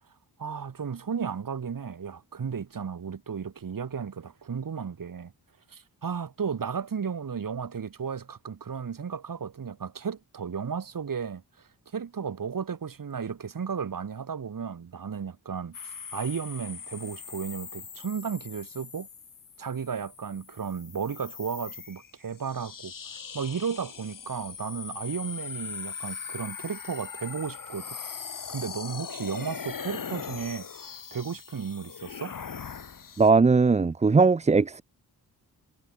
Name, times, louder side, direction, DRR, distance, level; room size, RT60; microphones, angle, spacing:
voice 1, 0.4-5.3 5.7-15.8 16.1-19.1 19.6-22.9 23.3-28.0 28.5-32.4, right 6 dB, 55° right, 4.4 m, -34 dB
sound 1, 15.7-33.3, left 6 dB, 55° left, 4.2 m, -41 dB
voice 2, 33.2-34.8, right 4 dB, 20° right, 0.5 m, -19 dB
wide cardioid pair, 130°, 39 cm